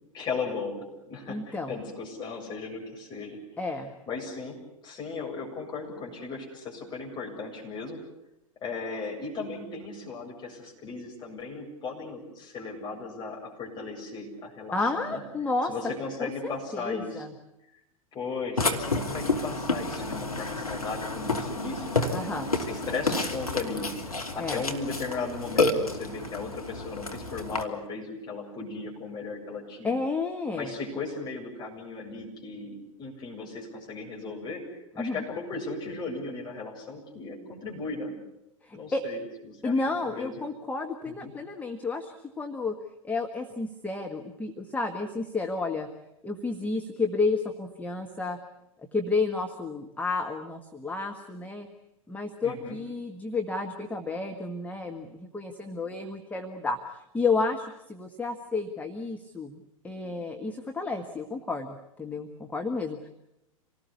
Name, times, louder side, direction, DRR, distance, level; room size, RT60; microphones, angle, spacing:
voice 1, 0.1-0.7 1.1-3.4 4.1-4.6 4.8-8.0 8.6-15.2 15.6-17.2 18.1-22.2 22.5-23.9 24.3-29.9 30.5-34.6 35.0-38.1 38.7-39.7 40.0-40.3 41.0-41.3 52.4-52.8, left 4 dB, 25° left, -1 dB, 7.7 m, -36 dB
voice 2, 1.3-1.8 3.6-3.9 14.7-15.7 16.2-17.3 22.1-22.5 24.4-24.6 29.8-30.7 35.0-35.2 38.6-39.0 39.6-42.7 43.0-45.9 46.2-48.4 48.9-51.7 52.1-63.1, left 3 dB, 10° left, 3 dB, 1.5 m, -31 dB
Burping eructation, 18.6-27.6, left 2 dB, 80° left, 2.7 m, -30 dB
27.0 x 19.0 x 8.4 m, 0.88 s
figure-of-eight pair, 100°, 18 cm